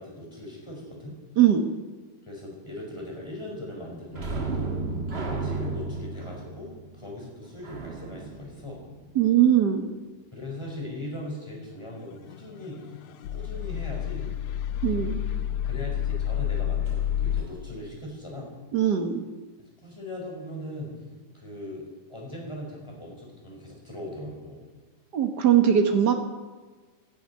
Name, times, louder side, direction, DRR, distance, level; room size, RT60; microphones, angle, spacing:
voice 1, 0.0-1.2 2.2-4.8 5.2-8.8 10.3-13.0 13.3-14.3 15.6-18.5 19.8-21.0 21.3-21.8 22.1-24.6, left 1 dB, 10° left, -2 dB, 4.9 m, -39 dB
sound 1, 4.1-9.5 16.9-17.0 17.4-17.5, right 3 dB, 40° right, 0.9 m, -34 dB
voice 2, 9.1-9.9 14.8-15.2 18.7-19.2 25.1-26.1, right 9 dB, 90° right, 6 dB, 0.9 m, -20 dB
sound 2, 12.1-17.4, left 10 dB, 80° left, 2.0 m, -29 dB
13.0 x 10.5 x 9.7 m, 1.3 s
omnidirectional pair, 3.6 m